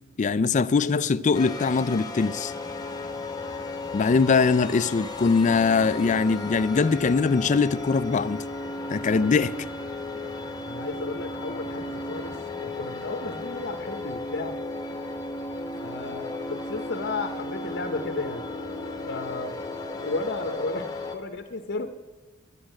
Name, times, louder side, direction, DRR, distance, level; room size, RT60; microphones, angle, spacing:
voice 1, 0.2-2.5 3.9-8.4 8.9-9.5, left 4 dB, 35° left, 0.4 m, -22 dB
voice 2, 0.7-1.1 9.1-9.4 10.6-14.6 15.8-18.5 19.0-19.6 20.0-21.9, left 3 dB, 55° left, 0.8 m, -33 dB
sound 1, 1.3-21.2, left 2 dB, 20° left, 0.9 m, -35 dB
11.5 x 8.2 x 8.8 m
head